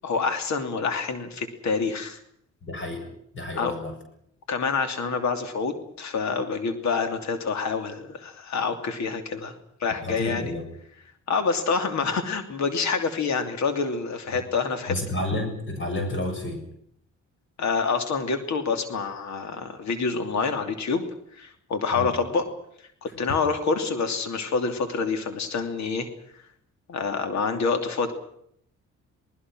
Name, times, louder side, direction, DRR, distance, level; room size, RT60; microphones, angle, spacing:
voice 1, 0.0-2.2 3.6-3.7 4.5-10.5 11.3-14.9 17.6-21.0 21.4-22.5 23.0-26.1 26.9-28.1, left 4 dB, 65° left, 8 dB, 2.9 m, -27 dB
voice 2, 2.6-3.1 3.3-4.0 10.0-10.6 14.9-16.6 21.9-22.2, left 1 dB, 40° left, 4 dB, 7.2 m, -30 dB
28.0 x 19.5 x 6.3 m, 0.69 s
cardioid pair, 90°, 30 cm